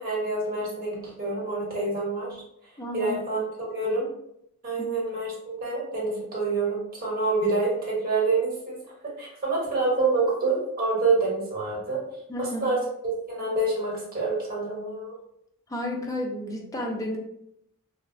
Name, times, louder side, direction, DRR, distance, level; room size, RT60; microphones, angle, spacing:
voice 1, 0.0-2.3 2.9-4.1 4.6-8.8 9.2-12.0 12.4-12.8 13.0-15.2, right 3 dB, 40° right, -4 dB, 1.0 m, -27 dB
voice 2, 2.8-3.2 12.3-12.7 15.7-17.2, left 1 dB, 15° left, 0 dB, 0.4 m, -32 dB
3.3 x 2.0 x 2.5 m, 0.75 s
head